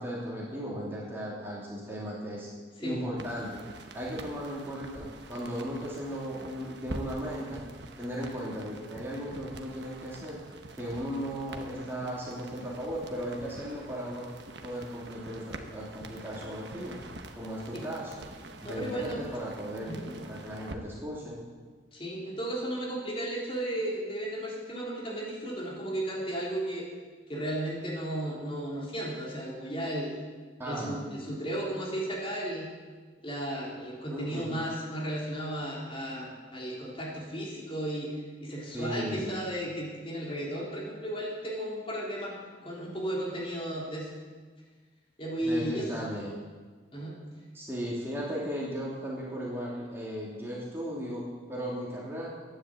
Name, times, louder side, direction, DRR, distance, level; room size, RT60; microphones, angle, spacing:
voice 1, 0.0-2.5 2.8-3.6 3.9-7.6 8.0-10.4 10.8-14.3 14.6-17.0 17.3-18.2 18.6-20.0 20.2-21.4 30.6-31.0 34.1-34.6 38.7-39.4 45.4-46.3 47.5-52.3, equal, 15° right, -6 dB, 2.7 m, -36 dB
voice 2, 2.8-3.1 17.7-17.8 18.7-19.2 19.8-20.1 21.9-26.9 27.3-30.1 30.7-32.7 33.2-44.1 45.2-45.9 46.9-47.2, right 1 dB, 30° left, -5 dB, 3.7 m, -34 dB
sound 1, 3.2-20.7, right 2 dB, 65° right, 1.1 m, -46 dB
12.5 x 10.0 x 7.9 m, 1.4 s
head